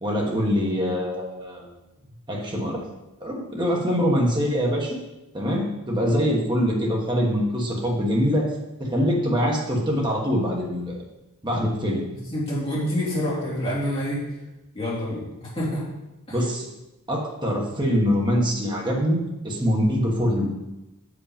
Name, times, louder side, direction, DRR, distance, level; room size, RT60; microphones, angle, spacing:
voice 1, 0.0-1.7 2.3-2.8 3.2-5.0 5.3-8.5 8.8-11.0 11.4-12.0 16.3-16.7 17.1-20.5, equal, 20° right, -2 dB, 1.3 m, -24 dB
voice 2, 12.3-14.2 14.7-15.8 16.3-16.4, equal, 25° left, -7 dB, 2.6 m, -27 dB
6.5 x 5.0 x 5.1 m, 0.99 s
head